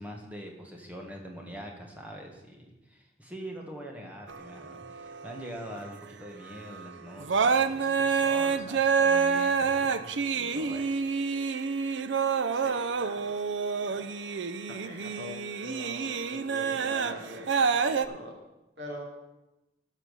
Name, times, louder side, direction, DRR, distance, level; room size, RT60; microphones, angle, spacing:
voice 1, 0.0-11.0, equal, 10° right, 1 dB, 1.8 m, -43 dB
sound 1, 4.3-5.8 6.7-6.9 7.2-18.1, right 5 dB, 85° right, 0.6 m, -28 dB
voice 2, 12.5-13.3 13.8-14.0 14.7-18.3 18.8-19.0, left 1 dB, 70° right, -1 dB, 3.4 m, -43 dB
14.0 x 5.8 x 6.9 m, 0.98 s
head